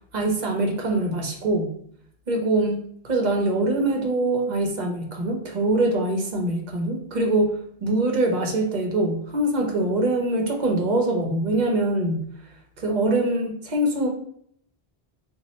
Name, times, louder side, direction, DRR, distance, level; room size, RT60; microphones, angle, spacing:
voice 1, 0.1-1.7 2.3-2.8 3.0-12.2 12.8-14.1, right 2 dB, 50° right, 2 dB, 0.7 m, -23 dB
4.0 x 2.2 x 3.0 m, 0.67 s
omnidirectional pair, 1.1 m